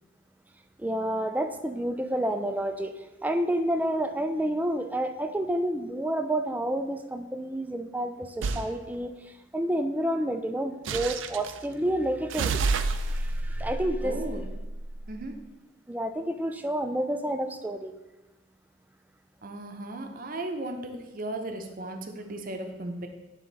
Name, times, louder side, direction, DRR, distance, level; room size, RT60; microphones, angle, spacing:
voice 1, 0.8-9.1 9.5-14.1 15.9-18.0, right 1 dB, 10° right, 7 dB, 0.3 m, -29 dB
sound 1, 8.4-8.7 10.8-11.6 12.3-14.9, right 3 dB, 85° right, 0.4 m, -29 dB
voice 2, 14.0-14.4 15.1-15.3 19.4-23.1, right 1 dB, 50° right, 4 dB, 0.7 m, -36 dB
9.2 x 3.6 x 4.0 m, 1.1 s
head